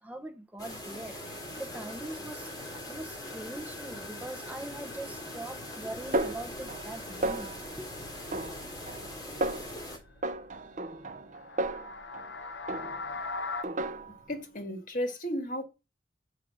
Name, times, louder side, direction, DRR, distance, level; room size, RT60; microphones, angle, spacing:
voice 1, 0.0-2.5 2.9-8.0, right 1 dB, 10° right, 0.9 m, -42 dB
sound 1, 0.6-10.0, left 1 dB, 20° left, 3.8 m, -42 dB
sound 2, 1.2-13.6, left 3 dB, 75° left, 0.8 m, -45 dB
Snare drum, 6.1-7.0 7.2-7.8 8.3-9.1 9.4-9.8 10.2-12.3 12.7-13.2 13.6-14.3, right 2 dB, 45° right, 0.6 m, -34 dB
voice 2, 14.3-15.6, equal, 45° left, 1.7 m, -33 dB
6.5 x 5.1 x 6.2 m
head